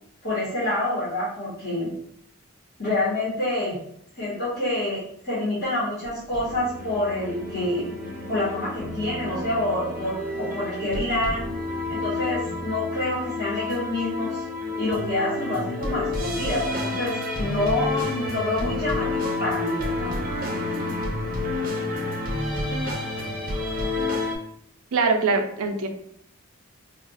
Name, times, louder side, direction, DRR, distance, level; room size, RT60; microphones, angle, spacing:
voice 1, 0.2-1.9 2.8-3.8 4.2-7.9 8.3-11.5 11.9-14.4 14.8-20.1, left 1 dB, 50° left, -9 dB, 1.1 m, -27 dB
sound 1, 6.0-24.4, left 2 dB, 40° right, 0.6 m, -29 dB
voice 2, 24.9-25.9, right 4 dB, 85° right, 6 dB, 0.5 m, -22 dB
2.4 x 2.3 x 3.8 m, 0.67 s
head